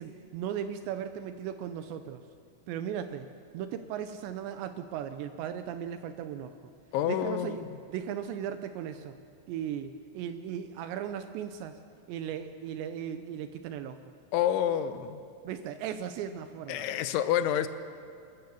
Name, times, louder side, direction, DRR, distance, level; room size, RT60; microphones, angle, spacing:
voice 1, 0.0-2.2 2.7-3.3 3.5-6.6 7.0-9.2 9.5-11.8 12.1-14.0 15.4-16.9, right 9 dB, 80° right, 9 dB, 2.6 m, -37 dB
voice 2, 6.9-7.7 14.3-15.2 16.7-17.7, left 10 dB, 80° left, 11 dB, 3.0 m, -28 dB
28.0 x 13.5 x 7.0 m, 2.5 s
omnidirectional pair, 5.6 m